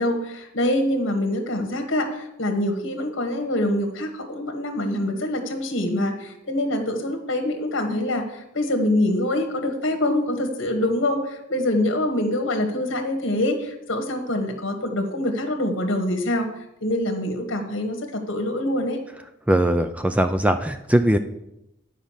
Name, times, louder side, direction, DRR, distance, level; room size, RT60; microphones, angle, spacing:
voice 1, 0.0-19.0, left 1 dB, 70° left, 4 dB, 1.3 m, -25 dB
voice 2, 19.5-21.2, right 1 dB, 5° right, 8 dB, 0.4 m, -20 dB
10.0 x 5.1 x 7.3 m, 0.86 s
head